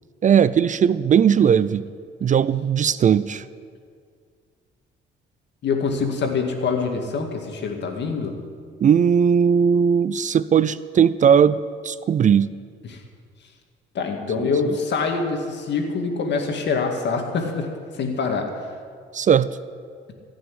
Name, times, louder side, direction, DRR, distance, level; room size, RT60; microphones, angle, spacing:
voice 1, 0.2-1.9 2.2-3.4 8.8-12.5 14.4-14.5 19.1-19.5, right 7 dB, 40° right, 16 dB, 0.4 m, -18 dB
voice 2, 5.6-8.4 12.8-13.0 13.9-18.5, left 4 dB, 60° left, 4 dB, 2.2 m, -25 dB
15.5 x 6.3 x 9.8 m, 2.1 s
cardioid pair, 80°, 21 cm